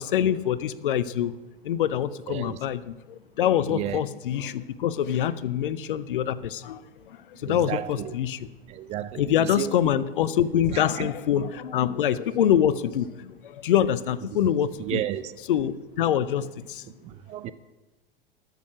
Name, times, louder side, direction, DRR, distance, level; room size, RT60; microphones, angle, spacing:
voice 1, 0.0-1.3 1.6-6.8 7.4-8.5 9.2-15.0 15.5-16.8, left 10 dB, 60° left, 0.6 m, -25 dB
voice 2, 2.3-2.6 3.7-4.0 7.5-8.2 8.7-9.8 10.7-11.1 14.8-15.4 16.0-16.1 17.0-17.5, right 13 dB, 25° right, 0.3 m, -33 dB
13.5 x 6.6 x 6.1 m
figure-of-eight pair, 85°, 29 cm